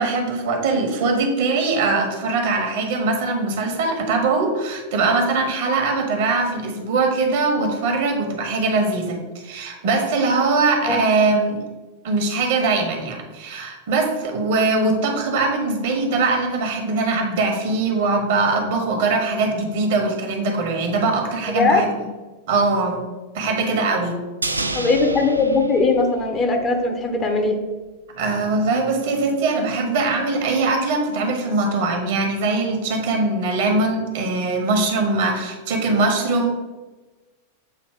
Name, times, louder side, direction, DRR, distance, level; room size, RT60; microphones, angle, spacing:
voice 1, 0.0-11.6 12.0-21.9 22.5-23.1 23.3-24.2 28.2-36.5, right 3 dB, 55° right, 3 dB, 1.2 m, -21 dB
voice 2, 21.6-21.9 24.7-27.5, left 3 dB, 25° left, 4 dB, 0.9 m, -19 dB
sound 1, 24.4-26.8 27.1-27.2, right 2 dB, 80° right, 0.4 m, -29 dB
7.8 x 2.8 x 4.8 m, 1.2 s
figure-of-eight pair, 90°, 0 cm